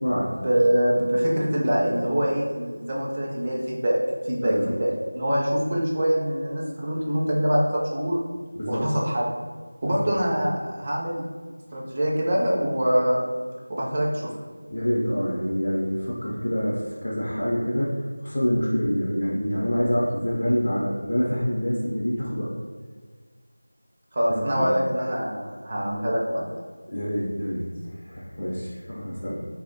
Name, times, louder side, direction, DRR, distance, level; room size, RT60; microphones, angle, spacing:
voice 1, 0.3-4.0 4.3-8.2 8.7-9.3 9.8-11.2 11.7-13.2 13.7-14.3 24.1-26.4, equal, 25° right, -4 dB, 0.4 m, -24 dB
voice 2, 14.7-22.5 24.3-24.7 26.9-27.6 28.0-29.3, equal, 45° left, -6 dB, 0.4 m, -26 dB
2.9 x 2.0 x 2.6 m, 1.5 s
figure-of-eight pair, 175°, 0 cm